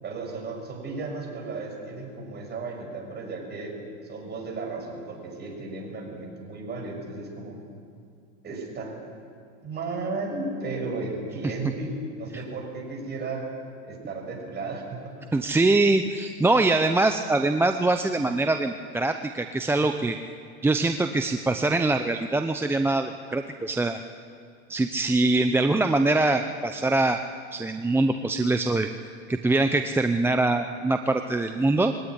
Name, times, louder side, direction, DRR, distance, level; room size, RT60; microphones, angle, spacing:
voice 1, 0.0-3.8 4.0-7.6 8.4-8.9 9.6-11.9 12.2-13.5 13.8-15.1, right 3 dB, 30° right, 0 dB, 6.7 m, -34 dB
voice 2, 15.3-20.2 20.6-24.0 24.7-27.2 27.5-28.9 29.3-31.9, right 2 dB, 5° right, 7 dB, 0.6 m, -23 dB
22.5 x 17.0 x 10.0 m, 2.3 s
supercardioid pair, 120°, 35 cm